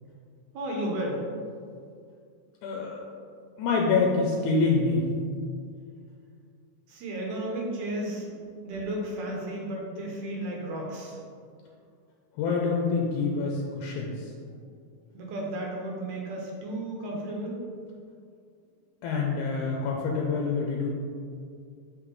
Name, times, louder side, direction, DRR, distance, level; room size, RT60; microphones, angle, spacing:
voice 1, 0.5-1.2 6.9-8.3 8.6-11.2 15.1-17.6, right 1 dB, 85° right, -1 dB, 2.5 m, -33 dB
voice 2, 2.6-3.0 3.6-5.1 12.3-14.3 19.0-20.9, left 4 dB, 80° left, -1 dB, 2.0 m, -26 dB
5.9 x 5.2 x 3.1 m, 2.3 s
omnidirectional pair, 3.5 m